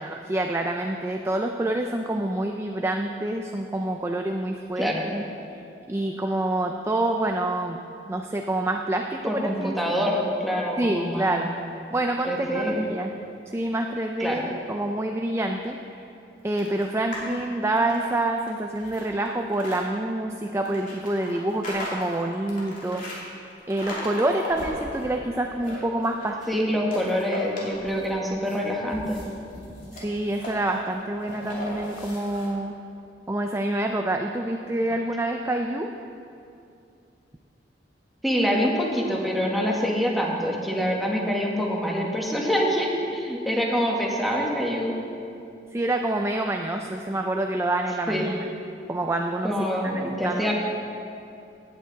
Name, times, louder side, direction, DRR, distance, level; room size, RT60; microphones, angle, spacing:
voice 1, 0.0-5.2 5.5-5.6 5.9-7.8 8.1-10.0 10.8-11.5 11.9-13.1 13.5-15.8 16.4-26.7 29.9-32.7 33.3-35.9 45.7-48.5 48.9-49.9 50.2-50.5, right 1 dB, 15° right, 3 dB, 0.4 m, -27 dB
voice 2, 9.3-11.6 12.3-12.8 14.2-14.4 26.5-29.2 38.2-44.9 48.1-48.3 49.4-50.5, equal, ahead, -2 dB, 1.5 m, -25 dB
sound 1, 16.6-17.3 17.7-19.8 20.7-23.2 23.7-25.1 25.4-26.6 26.9-28.2 28.5-32.5, left 1 dB, 50° left, 2.9 m, -37 dB
17.5 x 8.9 x 4.1 m, 2.6 s
head